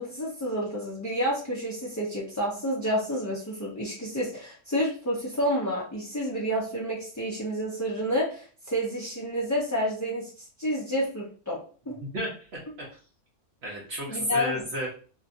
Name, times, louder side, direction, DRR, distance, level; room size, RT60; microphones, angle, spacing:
voice 1, 0.0-10.3 10.6-11.6 11.9-12.0 14.1-14.6, equal, 25° left, -7 dB, 0.4 m, -29 dB
voice 2, 12.0-13.0 13.6-14.9, equal, 60° right, -4 dB, 1.0 m, -33 dB
2.8 x 2.7 x 2.5 m, 0.40 s
omnidirectional pair, 1.3 m